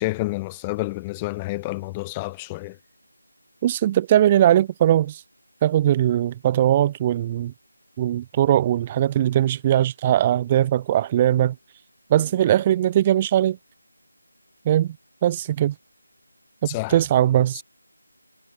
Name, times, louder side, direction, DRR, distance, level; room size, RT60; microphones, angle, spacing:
voice 1, 0.0-2.8 16.7-17.0, left 22 dB, 10° left, 2.2 m, -29 dB
voice 2, 3.6-5.2 5.6-7.5 8.0-11.6 12.1-13.6 14.7-15.0 15.2-15.7 16.6-17.6, right 11 dB, 15° right, 2.2 m, -20 dB
figure-of-eight pair, 160°, 0 cm